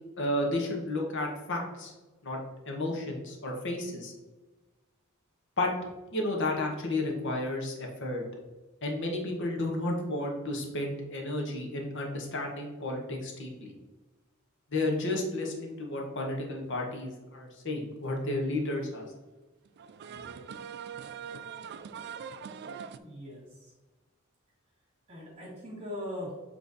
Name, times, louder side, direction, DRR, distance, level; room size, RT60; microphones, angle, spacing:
voice 1, 0.2-1.9 2.2-2.4 2.7-4.1 5.6-5.7 6.1-8.2 8.8-13.7 14.7-19.0, left 1 dB, 60° left, 0 dB, 1.2 m, -32 dB
sound 1, 17.8-17.9 19.7-23.0, right 7 dB, 50° right, 0.3 m, -42 dB
voice 2, 23.0-23.7 25.1-26.4, left 1 dB, 30° right, -5 dB, 1.9 m, -40 dB
7.4 x 3.3 x 4.0 m, 1.2 s
head